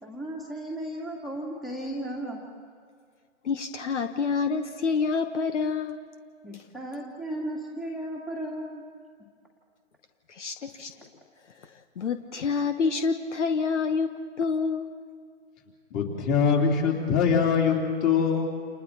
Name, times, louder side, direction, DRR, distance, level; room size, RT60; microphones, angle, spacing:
voice 1, 0.0-2.4 6.4-8.8, right 1 dB, ahead, -3 dB, 2.0 m, -35 dB
voice 2, 3.4-6.0 10.4-10.9 12.0-14.9, left 5 dB, 65° left, 8 dB, 1.6 m, -27 dB
voice 3, 15.9-18.4, left 6 dB, 25° left, 0 dB, 3.7 m, -23 dB
29.5 x 28.5 x 4.4 m, 2.1 s
hypercardioid pair, 155°, 39 cm